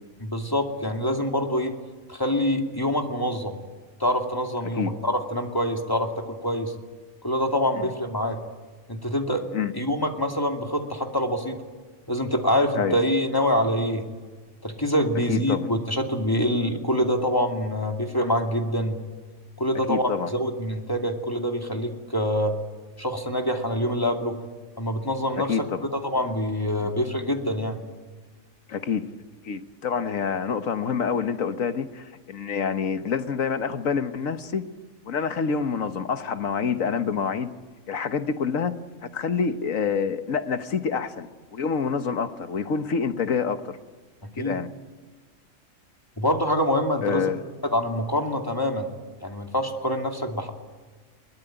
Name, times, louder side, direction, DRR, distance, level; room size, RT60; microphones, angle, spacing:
voice 1, 0.2-1.8 2.1-3.5 4.0-6.7 7.2-8.4 8.9-9.4 9.7-11.6 12.1-14.0 14.6-19.0 19.6-22.6 23.0-24.4 24.8-25.5 25.9-27.8 44.4-44.6 46.2-47.3 47.7-48.9 49.2-50.5, equal, 15° left, 3 dB, 2.5 m, -25 dB
voice 2, 15.3-15.7 19.9-20.3 25.5-25.8 26.8-26.9 28.7-29.1 29.4-34.6 35.1-37.5 37.9-38.7 39.1-43.8 44.4-44.7 47.0-47.4, left 6 dB, 75° left, 9 dB, 1.6 m, -27 dB
22.5 x 21.0 x 9.0 m, 1.4 s
omnidirectional pair, 1.4 m